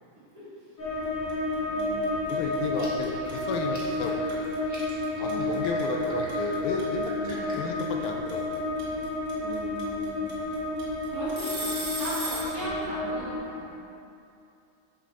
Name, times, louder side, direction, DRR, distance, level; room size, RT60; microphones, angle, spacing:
voice 1, 0.3-0.7 1.7-2.4 5.2-5.7 7.2-7.6 9.3-10.2 11.1-13.7, right 1 dB, 45° right, -9 dB, 1.8 m, -38 dB
sound 1, 0.8-13.4, left 1 dB, 45° left, 1.5 m, -31 dB
sound 2, 1.3-1.5 1.8-12.6, right 1 dB, 65° right, 2.0 m, -36 dB
voice 2, 2.3-4.3 5.2-8.6, left 4 dB, 80° left, 2 dB, 1.5 m, -33 dB
sound 3, 2.7-7.7, right 1 dB, 15° right, 0.7 m, -47 dB
5.6 x 5.0 x 4.1 m, 2.6 s
omnidirectional pair, 2.4 m